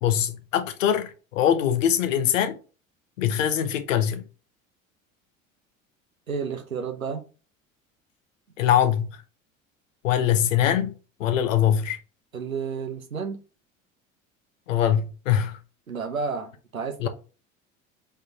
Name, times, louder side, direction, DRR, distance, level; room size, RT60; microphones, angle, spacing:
voice 1, 0.0-2.6 3.2-4.2 8.6-9.1 10.0-10.9 11.2-12.0 14.7-15.6 17.0-17.1, left 10 dB, 70° left, 0.7 m, -22 dB
voice 2, 6.3-7.2 12.3-13.4 15.9-17.1, right 5 dB, 90° right, 0.7 m, -31 dB
3.6 x 3.3 x 2.8 m
figure-of-eight pair, 65°, 40 cm